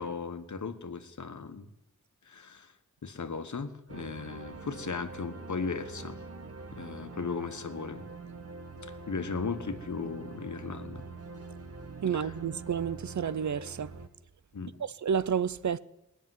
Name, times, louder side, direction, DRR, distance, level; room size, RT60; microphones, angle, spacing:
voice 1, 0.0-1.7 2.3-2.7 3.0-6.2 6.7-8.0 8.8-11.0 12.1-12.3 14.5-14.8, left 5 dB, 70° left, 1.3 m, -37 dB
sound 1, 3.9-14.1, right 3 dB, 50° right, 1.5 m, -44 dB
voice 2, 12.0-13.9 14.8-15.8, right 7 dB, 70° right, 0.6 m, -30 dB
19.5 x 6.9 x 9.6 m
wide cardioid pair, 55°, 30 cm